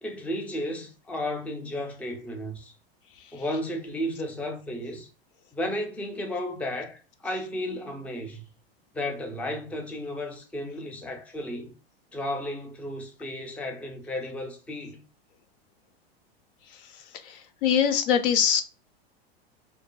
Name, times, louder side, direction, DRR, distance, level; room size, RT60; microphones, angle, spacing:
voice 1, 0.0-2.7 3.3-5.1 5.5-8.4 8.9-11.7 12.1-15.0, left 1 dB, 5° left, 0.4 m, -33 dB
voice 2, 17.6-18.6, left 8 dB, 60° left, 0.5 m, -22 dB
2.6 x 2.4 x 2.2 m
hypercardioid pair, 105°, 31 cm